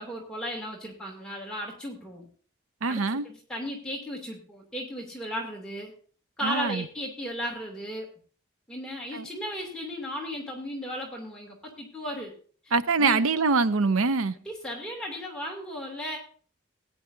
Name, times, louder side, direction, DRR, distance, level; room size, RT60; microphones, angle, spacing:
voice 1, 0.0-2.3 2.9-5.9 6.4-8.1 8.7-12.3 12.6-13.2 14.3-16.2, equal, 5° left, 2.8 m, -35 dB
voice 2, 2.8-3.3 6.4-6.8 9.1-9.2 12.7-14.3, right 4 dB, 85° right, 0.6 m, -24 dB
17.0 x 9.9 x 2.7 m
head